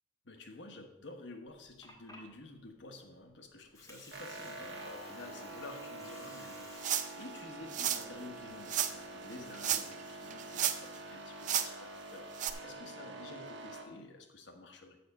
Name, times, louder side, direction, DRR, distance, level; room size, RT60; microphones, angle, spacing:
voice 1, 0.2-15.0, left 2 dB, 70° left, 4 dB, 1.2 m, -51 dB
Water, 1.6-9.4, left 2 dB, 15° left, 1.3 m, -58 dB
sound 1, 4.1-13.8, right 2 dB, 70° right, 1.3 m, -46 dB
sound 2, 6.8-7.2 7.7-8.0 8.7-8.9 9.5-10.0 10.3-11.0 11.4-11.7 12.4-12.5, right 10 dB, 40° right, 0.5 m, -32 dB
7.0 x 6.5 x 6.5 m, 0.96 s
head